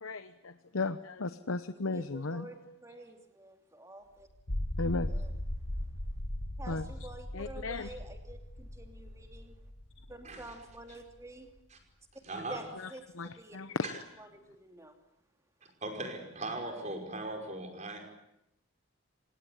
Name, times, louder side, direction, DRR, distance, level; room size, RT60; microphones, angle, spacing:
voice 1, 0.0-2.5 4.8-5.1 6.7-6.9 7.3-7.9 12.8-12.9 13.2-13.9, left 3 dB, 75° left, 11 dB, 0.9 m, -35 dB
voice 2, 1.9-4.3 5.1-5.3 6.6-9.5 10.1-11.5 12.5-12.6 12.9-13.6 14.2-14.9, right 1 dB, 15° right, 5 dB, 2.9 m, -49 dB
sound 1, 4.3-10.8, left 1 dB, 60° left, 1.9 m, -38 dB
voice 3, 10.2-10.6 11.7-11.8 12.2-12.6 13.8-14.0 15.8-18.0, right 2 dB, 35° right, 4 dB, 5.4 m, -39 dB
28.0 x 18.5 x 9.8 m, 0.87 s
head